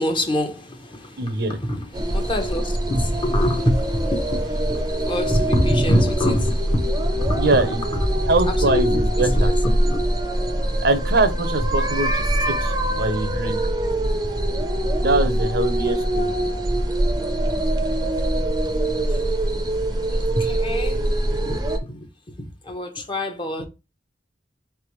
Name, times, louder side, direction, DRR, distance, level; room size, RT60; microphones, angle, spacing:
voice 1, 0.0-7.7 7.9-10.0 18.2-18.3 19.1-19.2 19.8-21.6 21.9-22.1 22.4-23.6, equal, 25° left, 0.9 m, -26 dB
voice 2, 1.2-1.6 7.4-7.8 8.2-9.5 10.8-12.2 12.6-13.6 15.0-16.3, right 2 dB, 65° right, 0.7 m, -22 dB
sound 1, 1.9-21.8, right 1 dB, 20° right, 0.6 m, -23 dB
4.4 x 3.4 x 3.0 m
head